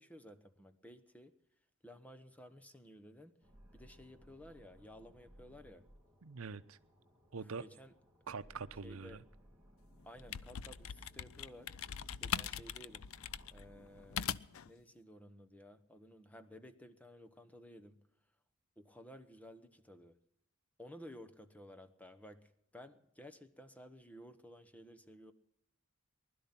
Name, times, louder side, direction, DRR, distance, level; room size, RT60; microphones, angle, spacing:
voice 1, 0.0-1.3 1.8-3.4 3.7-5.9 7.3-7.9 8.8-9.3 10.0-11.7 12.2-13.1 13.5-14.3 14.7-18.1 18.8-20.2 20.8-25.3, equal, 5° left, 0.9 m, -55 dB
sound 1, 3.4-14.2, equal, 10° right, 2.4 m, -62 dB
voice 2, 6.2-6.8 7.3-7.6 8.3-9.2, right 5 dB, 85° right, 0.7 m, -44 dB
sound 2, 10.0-14.7, left 9 dB, 85° left, 0.5 m, -41 dB
20.0 x 12.0 x 5.9 m
head